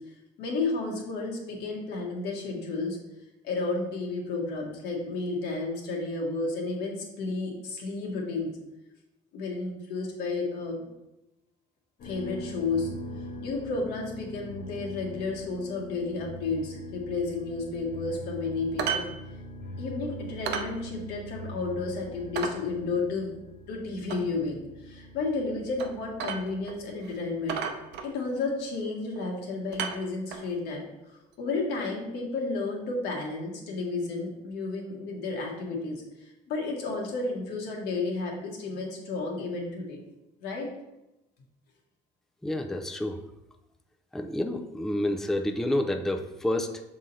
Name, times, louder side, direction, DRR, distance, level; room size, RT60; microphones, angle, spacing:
voice 1, 0.4-3.0 3.4-8.5 9.3-10.8 12.0-12.9 13.4-19.1 19.8-23.3 23.7-27.6 28.0-40.0 40.4-40.7, left 3 dB, 90° left, -1 dB, 1.5 m, -32 dB
sound 1, 12.0-28.6, equal, 55° left, 1.0 m, -43 dB
sound 2, 18.8-19.1 19.4-19.5 19.9-20.0 20.5-20.7 21.2-21.3 21.7-21.8 22.4-22.6 24.1-24.2 25.8-25.9 26.2-26.8 27.0-27.1 27.5-28.4 29.2-29.4 29.7-30.5 31.5-31.6, right 6 dB, 85° right, 0.7 m, -33 dB
voice 2, 42.4-43.2 44.1-46.8, left 1 dB, ahead, 5 dB, 0.4 m, -29 dB
6.4 x 3.7 x 4.1 m, 0.93 s
cardioid pair, 110°, 17 cm